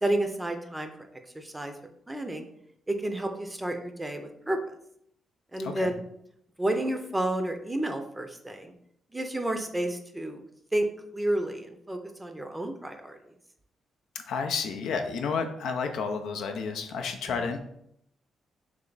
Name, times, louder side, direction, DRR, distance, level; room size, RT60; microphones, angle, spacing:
voice 1, 0.0-0.9 1.3-1.7 2.1-2.5 2.9-4.8 5.5-6.0 6.6-8.7 9.1-10.4 10.7-10.9 11.1-13.2, right 1 dB, 10° right, 5 dB, 0.5 m, -30 dB
voice 2, 5.6-5.9 14.3-17.6, left 5 dB, 85° left, 5 dB, 0.5 m, -31 dB
3.4 x 3.1 x 3.9 m, 0.73 s
cardioid pair, 110°, 0 cm